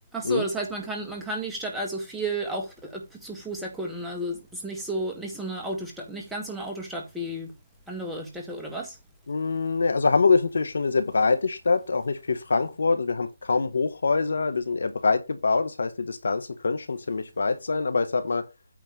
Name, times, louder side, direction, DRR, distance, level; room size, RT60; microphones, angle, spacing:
voice 1, 0.1-7.5 7.9-9.0, right 2 dB, 5° right, 1.7 m, -33 dB
voice 2, 9.3-18.5, left 4 dB, 65° left, 1.6 m, -24 dB
9.2 x 3.5 x 6.8 m
figure-of-eight pair, 155°, 0 cm